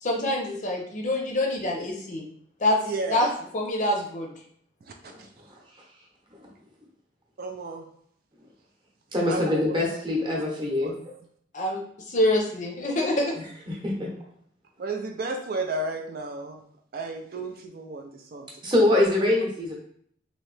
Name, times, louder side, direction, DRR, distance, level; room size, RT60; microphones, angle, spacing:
voice 1, 0.0-2.2 2.6-2.8 3.1-3.3 3.5-4.3 11.5-11.8 12.1-13.4, left 1 dB, 45° left, 1 dB, 0.6 m, -25 dB
voice 2, 2.8-3.3 5.2-5.3 7.4-7.9 9.3-9.8 10.2-11.0 14.8-16.6 16.9-18.5 18.8-19.0, right 3 dB, 55° right, 3 dB, 0.4 m, -33 dB
voice 3, 9.1-11.1 13.7-14.1 18.6-19.8, left 1 dB, 25° right, -3 dB, 0.9 m, -24 dB
3.0 x 2.7 x 3.3 m, 0.64 s
head